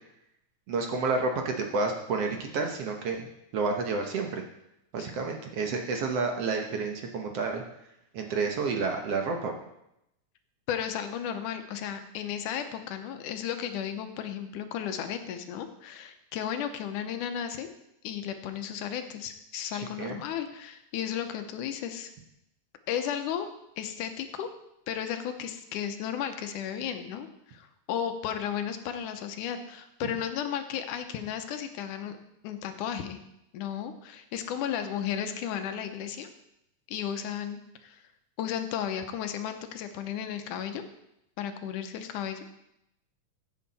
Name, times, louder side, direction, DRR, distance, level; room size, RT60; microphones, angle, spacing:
voice 1, 0.7-3.3 3.5-4.4 4.9-7.6 8.1-9.5 20.0-20.2, right 4 dB, 60° right, 3 dB, 1.9 m, -30 dB
voice 2, 10.7-17.7 18.0-22.1 22.9-23.5 23.8-24.5 24.9-32.2 32.4-33.2 33.5-36.3 36.9-38.0 38.4-40.8 41.4-42.5, left 9 dB, 85° left, 8 dB, 2.4 m, -34 dB
15.0 x 8.4 x 4.2 m, 0.82 s
omnidirectional pair, 3.6 m